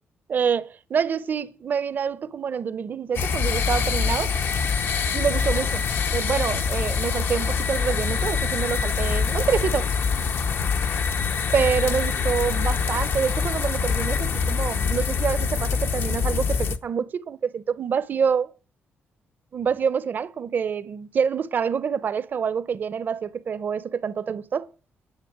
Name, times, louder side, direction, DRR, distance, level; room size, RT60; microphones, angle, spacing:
voice 1, 0.3-4.3 5.1-5.8 6.1-9.9 11.5-18.5 19.5-24.7, right 6 dB, 45° right, 0.7 m, -26 dB
sound 1, 3.1-16.8, left 6 dB, 55° left, 0.8 m, -24 dB
10.5 x 6.9 x 9.1 m
cardioid pair, 140°, 4 cm